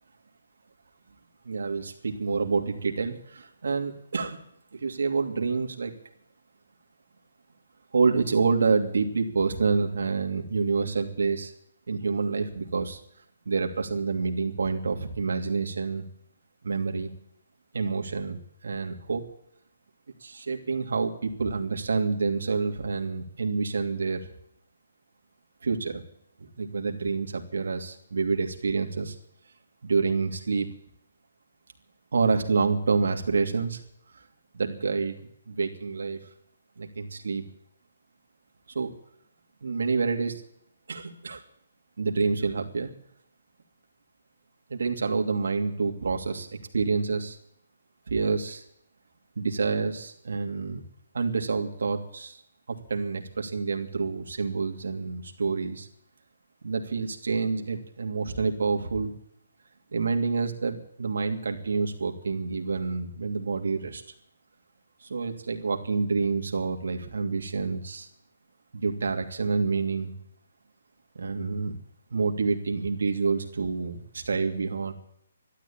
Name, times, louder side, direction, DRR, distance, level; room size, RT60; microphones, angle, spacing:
voice 1, 1.4-4.4 4.7-5.9 7.9-11.5 11.9-13.0 13.5-16.0 16.6-17.1 17.7-19.2 20.2-24.2 25.6-26.0 26.4-29.1 29.8-30.7 32.1-33.8 34.5-35.2 35.5-36.2 36.8-37.4 38.7-38.9 39.6-40.4 40.9-41.4 42.0-42.9 44.7-46.5 46.7-47.4 48.1-48.6 49.4-50.8 51.1-52.4 52.7-55.9 56.6-59.1 59.9-64.0 65.1-68.1 68.7-70.1 71.1-71.7 72.1-74.9, right 4 dB, 80° right, 4 dB, 2.7 m, -28 dB
13.5 x 12.5 x 8.8 m, 0.70 s
hypercardioid pair, 165°, 0 cm